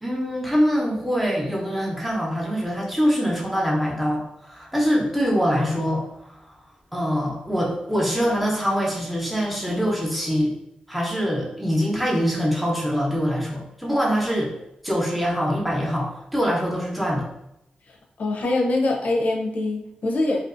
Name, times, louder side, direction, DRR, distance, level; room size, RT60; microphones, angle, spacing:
voice 1, 0.0-6.4 6.9-10.5 10.9-14.5 14.8-17.3, equal, ahead, -3 dB, 0.7 m, -24 dB
voice 2, 17.9-20.4, left 2 dB, 65° left, 1 dB, 0.5 m, -24 dB
2.5 x 2.3 x 2.4 m, 0.82 s
cardioid pair, 55°, 3 cm